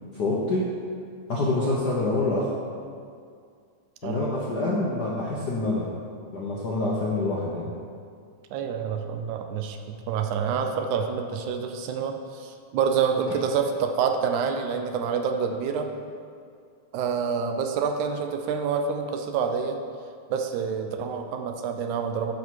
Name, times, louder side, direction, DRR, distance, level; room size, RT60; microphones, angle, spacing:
voice 1, 0.1-0.7 1.3-2.5 4.0-5.9 6.3-7.7, left 2 dB, 85° left, -5 dB, 0.9 m, -26 dB
voice 2, 8.5-15.9 16.9-19.8 20.3-22.3, right 6 dB, 85° right, 5 dB, 2.1 m, -27 dB
12.0 x 5.4 x 4.7 m, 2.3 s
omnidirectional pair, 3.4 m